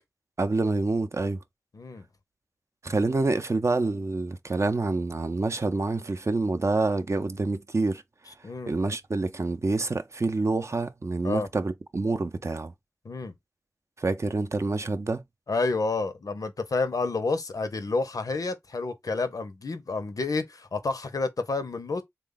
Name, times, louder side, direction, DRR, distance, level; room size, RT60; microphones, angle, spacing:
voice 1, 0.4-1.4 2.8-8.0 8.7-12.7 14.0-15.2, right 3 dB, 55° right, 0.5 m, -27 dB
voice 2, 1.7-2.0 8.4-8.7 11.2-11.5 13.0-13.3 15.5-22.0, left 3 dB, 85° left, 0.6 m, -29 dB
3.4 x 2.2 x 3.7 m
wide cardioid pair, 50°, 6 cm